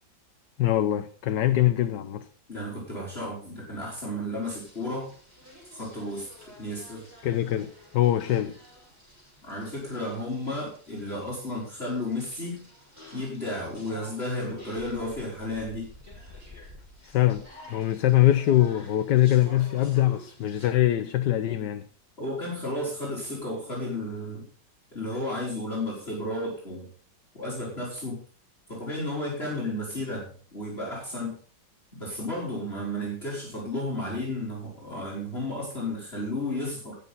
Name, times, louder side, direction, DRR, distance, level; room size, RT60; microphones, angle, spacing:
voice 1, 0.6-2.3 7.2-8.6 17.0-21.9, left 13 dB, 70° left, 1.4 m, -23 dB
voice 2, 2.5-5.1 5.7-7.1 9.4-12.6 13.1-15.9 22.2-24.5 24.9-26.9 27.4-28.2 28.7-31.4 32.0-37.0, left 1 dB, 35° left, 4.4 m, -33 dB
sound 1, 4.4-20.7, left 1 dB, 10° right, 6.5 m, -50 dB
19.5 x 6.9 x 4.2 m
omnidirectional pair, 2.0 m